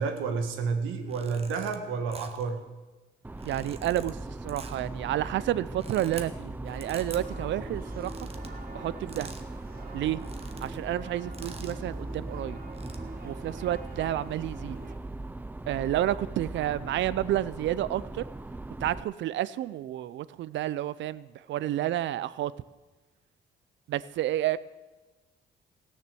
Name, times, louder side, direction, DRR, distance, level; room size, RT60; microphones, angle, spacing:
voice 1, 0.0-2.6, right 5 dB, 90° right, 6 dB, 1.5 m, -30 dB
sound 1, 1.0-1.8 2.1-2.5 3.3-4.1 4.5-4.9 5.6-6.3 6.8-7.2 7.9-8.5 9.1-9.5 9.8-9.9 10.1-10.8 11.3-11.8 12.6-13.0, right 4 dB, 30° right, 1.2 m, -46 dB
sound 2, 3.2-19.0, right 2 dB, 10° right, 0.4 m, -39 dB
voice 2, 3.4-8.3 8.7-9.3 9.9-10.2 10.6-12.6 13.2-14.8 15.7-18.2 18.8-22.5 23.9-24.6, right 13 dB, 70° right, 18 dB, 0.5 m, -30 dB
sound 3, 6.6-15.0, right 2 dB, 50° right, 1.1 m, -47 dB
16.5 x 6.7 x 6.8 m, 1.2 s
cardioid pair, 90°, 20 cm